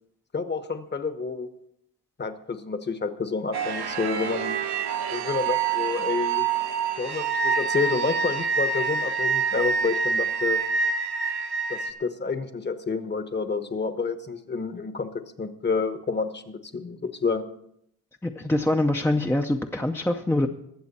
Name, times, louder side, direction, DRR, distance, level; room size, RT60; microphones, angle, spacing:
voice 1, 0.3-1.5 2.2-4.6 5.1-6.5 7.0-10.6 11.7-15.1 15.4-17.4, left 4 dB, 25° left, 10 dB, 1.0 m, -29 dB
sound 1, 3.5-11.9, right 5 dB, 70° right, 1.2 m, -26 dB
voice 2, 18.2-20.5, left 1 dB, 5° left, 4 dB, 0.6 m, -24 dB
22.0 x 7.5 x 4.2 m, 0.74 s
cardioid pair, 115°, 40 cm